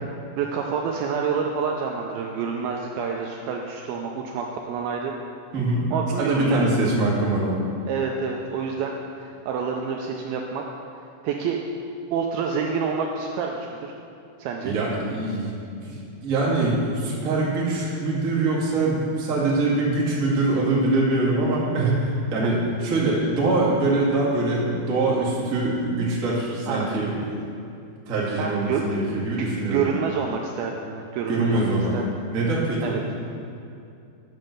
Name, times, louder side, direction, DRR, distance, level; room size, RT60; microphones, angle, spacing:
voice 1, 0.4-5.1 5.9-6.7 7.9-10.6 11.2-11.6 12.1-14.0 14.4-14.7 26.7-27.1 28.4-28.8 29.4-32.0 32.8-33.0, right 6 dB, 85° right, 1 dB, 2.2 m, -28 dB
voice 2, 5.5-5.9 6.2-7.6 14.6-15.6 15.8-16.0 16.2-27.2 28.1-29.8 31.3-31.9 32.3-33.0, right 2 dB, 45° right, -5 dB, 1.0 m, -23 dB
9.3 x 6.4 x 6.5 m, 2.6 s
omnidirectional pair, 4.9 m